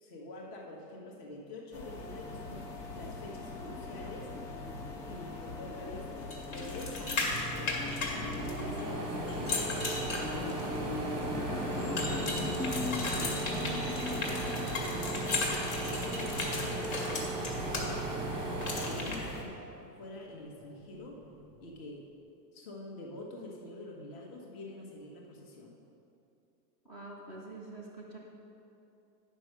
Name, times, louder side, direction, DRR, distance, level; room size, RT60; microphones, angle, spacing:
voice 1, 0.0-2.6 2.9-4.3 5.0-6.1 6.5-14.2 14.7-15.3 15.8-18.5 18.8-19.6 20.0-21.2 21.6-22.0 22.5-25.8, left 2 dB, 35° left, -1 dB, 1.5 m, -46 dB
sound 1, 1.7-19.4, left 3 dB, 75° left, 2.0 m, -40 dB
sound 2, 6.3-8.8 9.3-10.8 12.0-17.8 18.6-19.2, left 3 dB, 55° left, 2.1 m, -36 dB
sound 3, 7.3-19.9 20.3-21.5, right 2 dB, 10° right, 0.9 m, -37 dB
voice 2, 26.8-28.2, right 2 dB, 10° left, -3 dB, 0.4 m, -46 dB
9.1 x 5.8 x 6.2 m, 2.8 s
supercardioid pair, 160°, 50 cm